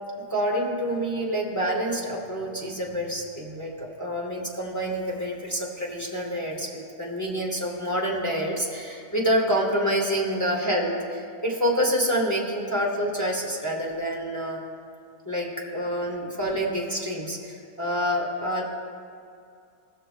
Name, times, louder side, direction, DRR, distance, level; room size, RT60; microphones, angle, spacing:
voice 1, 0.3-14.6 15.2-18.6, equal, 10° left, -4 dB, 1.1 m, -27 dB
17.5 x 6.6 x 2.3 m, 2.3 s
omnidirectional pair, 1.7 m